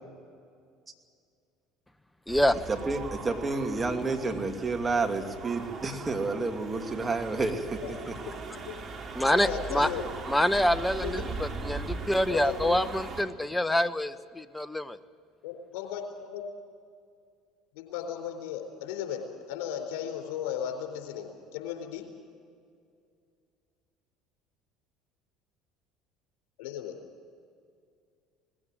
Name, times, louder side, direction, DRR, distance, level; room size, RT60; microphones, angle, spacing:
sound 1, 2.3-13.2, right 4 dB, 40° right, 3.1 m, -39 dB
voice 1, 2.7-7.8 8.1-8.2, right 3 dB, 20° right, 4 dB, 2.6 m, -30 dB
voice 2, 7.8-8.7 9.3-10.1 10.9-11.3 12.3-12.9 15.4-16.4 17.7-22.1 26.6-27.0, left 8 dB, 70° left, 4 dB, 4.2 m, -36 dB
voice 3, 9.1-9.9 10.3-15.0, left 1 dB, 10° left, 14 dB, 1.0 m, -26 dB
20.0 x 16.0 x 9.3 m, 2.3 s
hypercardioid pair, 65°, 0 cm